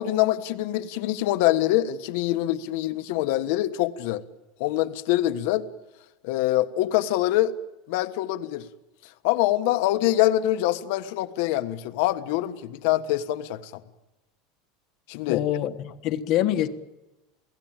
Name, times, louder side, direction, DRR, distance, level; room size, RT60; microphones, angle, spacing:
voice 1, 0.0-4.2 4.6-5.7 6.2-7.5 7.9-8.7 9.2-13.8 15.1-15.4, left 14 dB, 65° left, 1.3 m, -24 dB
voice 2, 15.3-16.7, left 12 dB, 45° left, 1.4 m, -25 dB
29.0 x 17.0 x 9.0 m
supercardioid pair, 165°, 0 cm